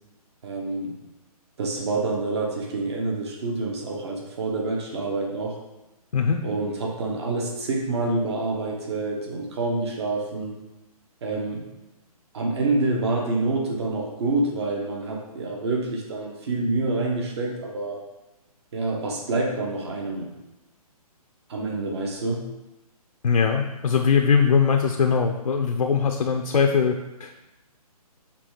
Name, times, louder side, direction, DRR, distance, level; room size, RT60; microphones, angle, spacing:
voice 1, 0.4-0.9 1.6-5.6 6.4-10.5 11.2-11.6 12.3-18.0 18.7-20.3 21.5-22.5, right 2 dB, 45° right, -1 dB, 1.3 m, -27 dB
voice 2, 6.1-6.4 23.2-27.4, left 6 dB, 80° left, 3 dB, 0.7 m, -21 dB
6.0 x 3.4 x 5.0 m, 1.0 s
hypercardioid pair, 165°, 20 cm